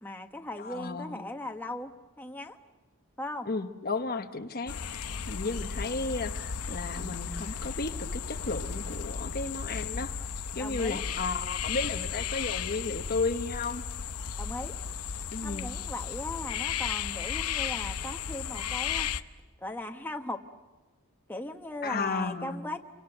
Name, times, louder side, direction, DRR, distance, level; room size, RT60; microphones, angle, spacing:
voice 1, 0.0-1.9 2.2-2.6 3.2-3.5 10.6-11.0 14.4-14.8 15.4-19.1 19.6-20.4 21.3-22.8, left 1 dB, 10° left, 3 dB, 1.3 m, -38 dB
voice 2, 0.6-1.2 3.5-4.8 5.3-10.1 10.5-13.8 15.3-15.7 21.8-22.6, left 3 dB, 45° left, 6 dB, 1.1 m, -33 dB
sound 1, 4.7-19.2, left 7 dB, 85° left, 0.9 m, -34 dB
29.5 x 25.0 x 8.0 m, 1.2 s
head